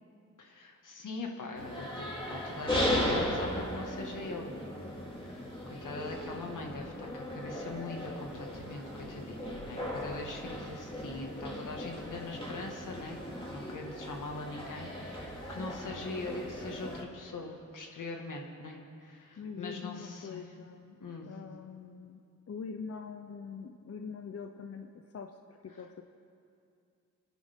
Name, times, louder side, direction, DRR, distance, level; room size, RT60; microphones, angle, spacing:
voice 1, 0.4-4.7 5.1-13.2 13.5-20.4 21.0-21.3, left 3 dB, 80° left, 1 dB, 1.8 m, -42 dB
sound 1, 1.5-17.0, left 1 dB, 15° left, 2.3 m, -37 dB
voice 2, 19.4-21.0 21.2-22.2 22.5-26.0, left 5 dB, 50° left, 6 dB, 0.6 m, -43 dB
30.0 x 10.5 x 3.6 m, 2.5 s
wide cardioid pair, 125°, 31 cm